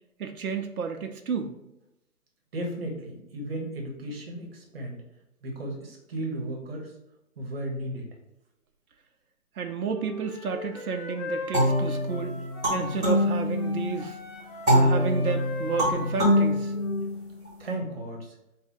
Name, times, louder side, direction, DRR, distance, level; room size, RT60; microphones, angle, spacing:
voice 1, 0.2-1.6 9.6-12.3 12.7-14.2 14.7-16.7, right 5 dB, 80° right, 6 dB, 0.6 m, -31 dB
voice 2, 2.5-5.0 5.4-6.9 7.4-8.1 14.5-14.6 17.6-18.3, right 1 dB, 45° right, 0 dB, 0.9 m, -35 dB
Wind instrument woodwind instrument, 9.8-13.3 13.5-17.1, left 3 dB, 25° left, 1.3 m, -39 dB
sound 1, 11.5-14.0 14.7-17.5, equal, 10° right, 1.3 m, -24 dB
3.6 x 2.2 x 3.6 m, 0.89 s
figure-of-eight pair, 150°, 43 cm